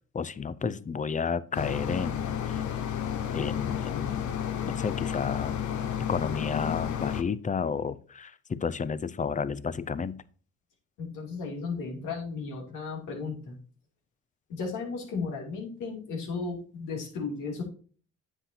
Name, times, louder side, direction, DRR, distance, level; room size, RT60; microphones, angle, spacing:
voice 1, 0.1-2.6 3.3-4.4 4.6-5.7 6.1-10.2, left 6 dB, 25° left, 16 dB, 0.6 m, -32 dB
sound 1, 1.5-7.2, left 9 dB, 75° left, 1.1 m, -31 dB
voice 2, 11.0-13.6 14.5-17.6, left 4 dB, 90° left, 0 dB, 2.9 m, -35 dB
9.9 x 7.9 x 2.8 m, 0.42 s
cardioid pair, 90°, 30 cm